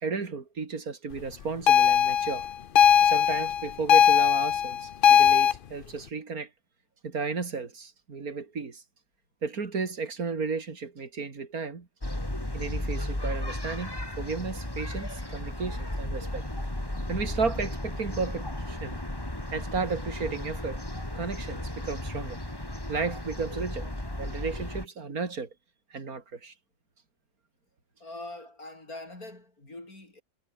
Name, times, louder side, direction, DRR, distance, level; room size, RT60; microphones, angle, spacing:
voice 1, 0.0-2.5 3.0-6.5 7.0-8.8 9.4-11.9 12.5-16.5 17.1-19.0 19.5-20.8 21.1-22.4 22.9-23.9 24.2-25.5 25.9-26.5, right 4 dB, 80° right, 3.0 m, -33 dB
sound 1, 1.7-5.5, left 9 dB, 50° left, 0.7 m, -20 dB
sound 2, 12.0-24.9, left 1 dB, 15° left, 3.4 m, -34 dB
voice 2, 28.0-30.2, left 2 dB, 80° left, 7.3 m, -43 dB
omnidirectional pair, 1.5 m